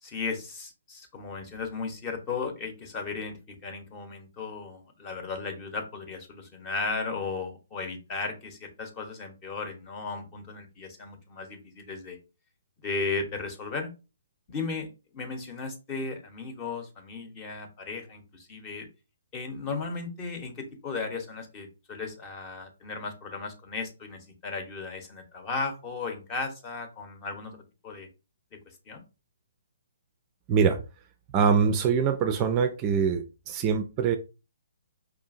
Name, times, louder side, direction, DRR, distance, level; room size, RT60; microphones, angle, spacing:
voice 1, 0.0-12.2 12.8-13.9 14.5-14.9 15.1-18.9 19.3-28.1 28.7-29.0, left 4 dB, 25° left, 0.9 m, -35 dB
voice 2, 30.5-30.8 31.3-34.2, right 6 dB, 25° right, 0.4 m, -24 dB
4.7 x 2.6 x 2.5 m
figure-of-eight pair, 130°, 0 cm